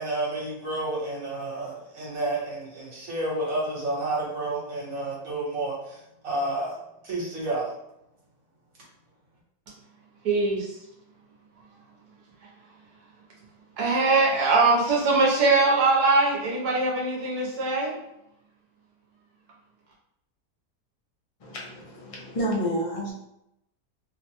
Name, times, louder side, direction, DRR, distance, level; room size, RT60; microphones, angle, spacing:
voice 1, 0.0-6.7 7.0-7.7, right 2 dB, 65° right, -5 dB, 1.5 m, -30 dB
voice 2, 10.2-10.7 13.8-18.0, right 3 dB, 80° right, -4 dB, 1.2 m, -22 dB
voice 3, 21.4-23.1, equal, 55° left, -4 dB, 0.3 m, -30 dB
3.3 x 2.1 x 2.8 m, 0.82 s
omnidirectional pair, 1.6 m